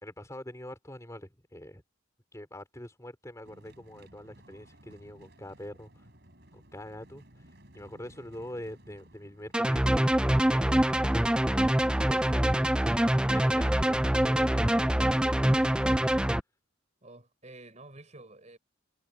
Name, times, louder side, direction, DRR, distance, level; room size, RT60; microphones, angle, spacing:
voice 1, 0.0-1.8 2.3-6.1 6.5-7.4 7.7-11.7 12.1-16.1, left 1 dB, 15° left, 3.5 m, -44 dB
sound 1, 3.4-14.1, right 1 dB, 55° right, 6.4 m, -57 dB
sound 2, 9.5-16.4, right 1 dB, 5° right, 0.4 m, -25 dB
voice 2, 17.0-18.6, right 2 dB, 35° right, 4.8 m, -50 dB
head